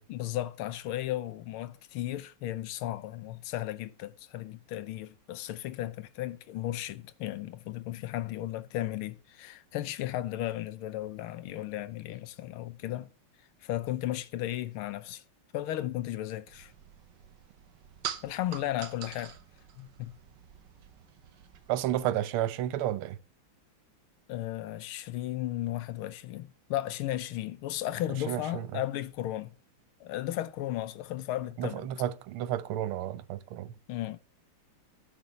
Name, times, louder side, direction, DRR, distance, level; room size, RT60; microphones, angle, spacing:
voice 1, 0.1-13.1 13.6-15.2 15.5-16.7 18.2-19.3 19.8-20.1 24.3-29.5 30.0-31.9 33.9-34.2, left 14 dB, 80° left, 1.6 m, -35 dB
sound 1, 16.5-22.0, right 9 dB, 60° right, 1.5 m, -45 dB
voice 2, 21.7-23.2 28.3-28.8 31.6-33.7, right 12 dB, 85° right, 1.5 m, -31 dB
10.5 x 5.5 x 6.8 m
omnidirectional pair, 2.3 m